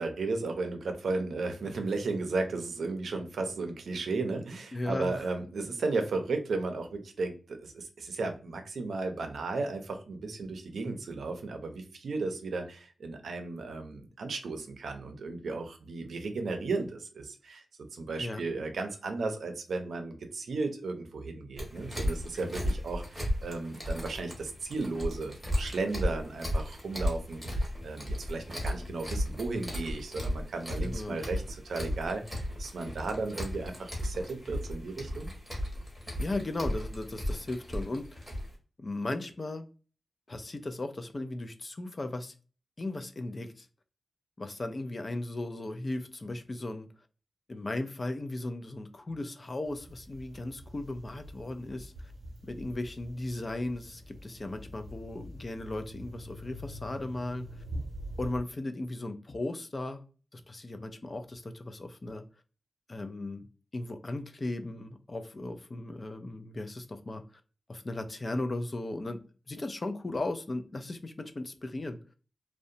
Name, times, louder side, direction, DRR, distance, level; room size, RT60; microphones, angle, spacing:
voice 1, 0.0-17.6 17.9-35.3, right 3 dB, 85° right, 0.5 m, -35 dB
voice 2, 4.7-5.2 18.2-18.4 30.8-31.2 36.2-38.3 38.8-39.6 40.3-42.3 42.8-43.7 44.4-46.9 47.5-51.9 52.4-57.5 58.2-60.0 60.3-62.2 62.9-63.5 63.7-67.2 67.7-69.2 69.5-72.0, left 2 dB, 30° left, 0.3 m, -36 dB
sound 1, 21.6-38.5, equal, ahead, 0.9 m, -35 dB
sound 2, 49.6-58.4, equal, 50° right, 0.8 m, -45 dB
2.7 x 2.1 x 2.5 m
wide cardioid pair, 150°, 0 cm